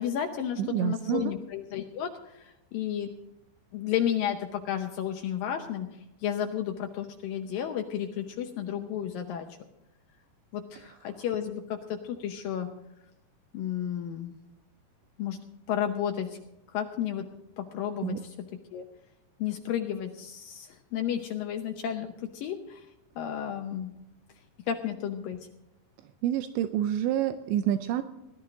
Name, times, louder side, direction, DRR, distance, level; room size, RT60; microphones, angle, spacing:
voice 1, 0.0-3.1 3.7-5.9 6.2-9.5 10.5-12.7 13.5-14.4 15.2-15.4 15.7-16.4 16.7-17.2 17.6-18.4 18.7-18.8 19.4-22.9 23.2-23.9 24.7-25.4, left 9 dB, 85° left, 4 dB, 2.0 m, -32 dB
voice 2, 0.6-1.3 18.0-18.2 26.2-28.0, right 11 dB, 85° right, 10 dB, 2.9 m, -28 dB
18.0 x 12.5 x 3.8 m, 0.91 s
omnidirectional pair, 5.2 m